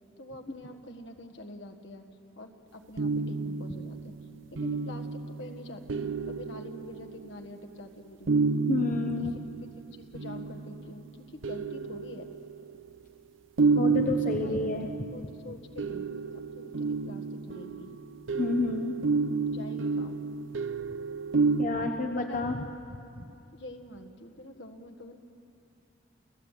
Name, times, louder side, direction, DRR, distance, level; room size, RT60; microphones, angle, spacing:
voice 1, 0.2-2.0 2.3-4.1 4.5-8.3 9.2-9.4 9.9-12.3 14.3-14.7 15.1-16.1 16.3-18.0 19.5-20.3 22.3-22.6 23.2-25.2, left 1 dB, 65° left, 6 dB, 1.7 m, -46 dB
sound 1, 3.0-7.5 8.3-10.9 11.4-12.9 13.6-21.7, right 4 dB, 80° right, 0.7 m, -30 dB
voice 2, 8.7-9.3 13.7-14.9 18.4-19.0 21.6-22.6 23.2-23.3, left 3 dB, 40° left, 4 dB, 0.9 m, -30 dB
29.0 x 16.0 x 8.3 m, 2.6 s
head